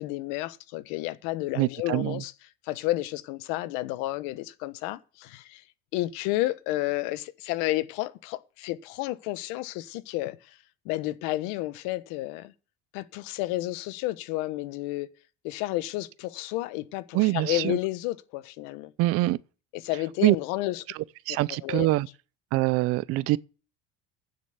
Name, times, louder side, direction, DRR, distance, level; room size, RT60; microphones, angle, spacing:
voice 1, 0.0-2.3 2.6-5.6 5.9-10.6 10.8-12.5 12.9-15.1 15.4-18.9 19.7-20.8 21.3-21.9, left 17 dB, 80° left, 1.2 m, -31 dB
voice 2, 1.6-2.2 17.1-17.8 19.0-19.4 20.2-20.4 21.3-22.1 22.5-23.4, right 18 dB, 50° right, 0.5 m, -24 dB
9.5 x 7.7 x 7.9 m
cardioid pair, 155°, 29 cm